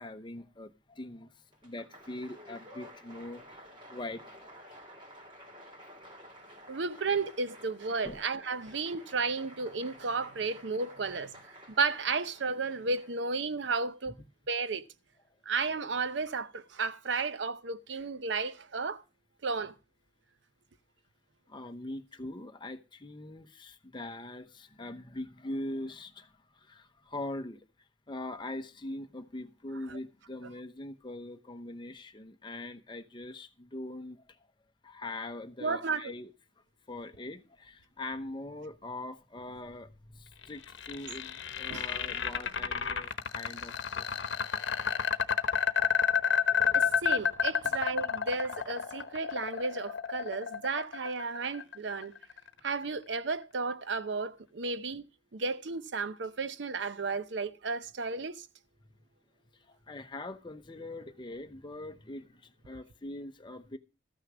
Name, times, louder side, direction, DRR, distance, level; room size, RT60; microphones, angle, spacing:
voice 1, 0.0-1.3 1.6-3.6 3.9-4.8 8.0-8.2 21.5-26.3 26.6-27.6 28.1-34.4 34.8-36.3 36.9-44.2 46.2-46.4 59.7-63.8, left 2 dB, 25° left, 0.8 m, -42 dB
Applause, 1.5-13.4, equal, 25° right, 3.3 m, -52 dB
voice 2, 6.7-11.4 11.8-14.2 14.5-14.8 15.5-19.0 19.4-19.7 29.9-30.0 35.6-36.1 41.7-41.9 46.7-52.1 52.6-55.0 55.3-58.5, right 4 dB, 70° right, 0.7 m, -33 dB
sound 1, 40.4-52.5, left 6 dB, 70° left, 1.0 m, -30 dB
13.5 x 6.6 x 6.1 m
head